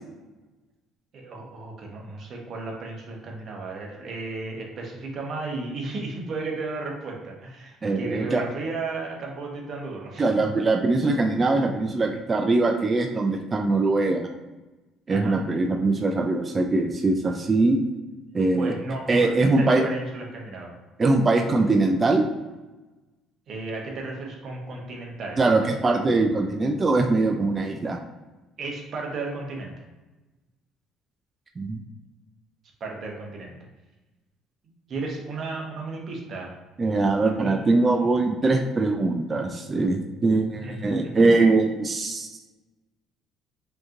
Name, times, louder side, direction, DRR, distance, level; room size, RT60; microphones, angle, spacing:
voice 1, 1.1-10.3 15.1-15.4 18.6-20.7 23.5-25.8 28.6-29.7 32.8-33.5 34.9-36.6 37.2-37.5 40.6-41.2, right 3 dB, 45° right, -1 dB, 1.0 m, -34 dB
voice 2, 7.8-8.4 10.2-14.3 15.1-17.8 18.3-18.7 19.1-19.8 21.0-22.3 25.4-28.0 31.6-31.8 36.8-42.3, right 3 dB, 25° right, 3 dB, 0.3 m, -22 dB
5.1 x 2.9 x 2.5 m, 1.1 s
cardioid pair, 125°, 0 cm